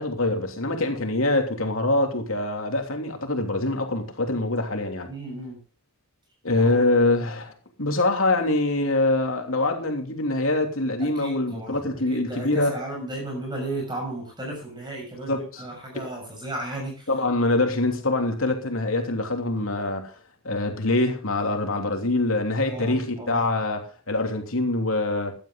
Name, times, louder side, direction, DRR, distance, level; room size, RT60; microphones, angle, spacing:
voice 1, 0.0-5.1 6.4-7.5 7.8-12.8 15.3-15.7 17.1-20.1 20.4-25.3, left 2 dB, 85° left, 3.1 m, -24 dB
voice 2, 5.1-5.6 6.6-6.8 11.0-17.1 22.6-23.5, right 1 dB, 20° right, 6.6 m, -34 dB
16.0 x 12.0 x 3.9 m
head